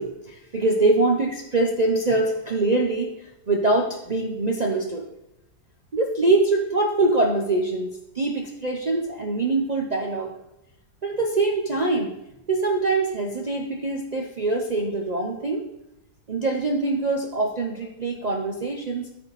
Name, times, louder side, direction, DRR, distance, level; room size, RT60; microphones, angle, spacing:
voice 1, 0.0-3.2 3.5-5.0 5.9-7.9 8.1-10.3 11.0-12.1 12.5-15.6 16.3-19.1, right 2 dB, 55° right, -1 dB, 0.4 m, -23 dB
13.0 x 4.3 x 4.1 m, 0.88 s
omnidirectional pair, 1.8 m